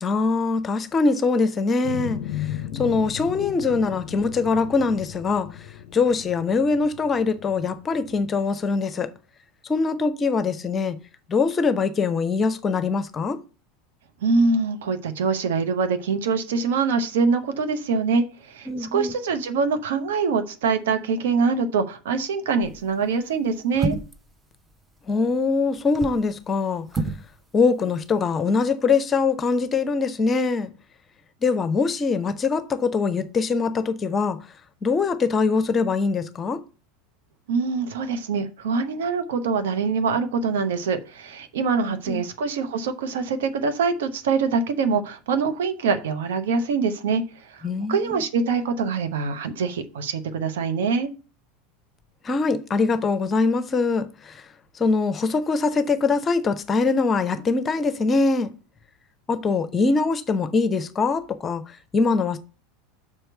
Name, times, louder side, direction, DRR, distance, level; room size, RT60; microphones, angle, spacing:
voice 1, 0.0-5.5 5.9-9.1 9.7-11.0 11.3-13.4 18.7-19.2 25.1-26.9 27.5-30.7 31.4-34.4 34.8-36.6 41.8-42.2 47.6-48.2 52.2-54.4 54.7-58.5 59.3-62.4, left 4 dB, 25° left, 0.8 m, -23 dB
sound 1, 1.8-8.4, left 11 dB, 55° left, 0.5 m, -36 dB
voice 2, 14.2-24.0 37.5-47.2 47.5-47.6 47.9-51.1, right 5 dB, 60° right, 0.9 m, -24 dB
sound 2, 22.6-22.9 23.7-24.3 25.8-26.3 26.9-27.3 27.5-27.6, right 3 dB, 15° right, 0.8 m, -28 dB
6.2 x 4.5 x 6.5 m
figure-of-eight pair, 80°, 0 cm